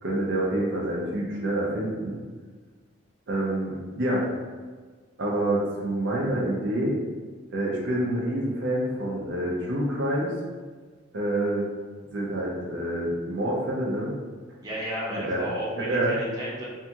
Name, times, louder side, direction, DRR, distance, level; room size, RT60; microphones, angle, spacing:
voice 1, 0.0-2.2 3.3-4.3 5.2-7.0 7.5-10.3 11.1-11.7 12.1-14.2 15.1-16.2, right 1 dB, 65° right, -4 dB, 0.5 m, -27 dB
voice 2, 14.6-16.7, equal, 20° right, -7 dB, 0.8 m, -33 dB
2.7 x 2.3 x 2.7 m, 1.4 s
head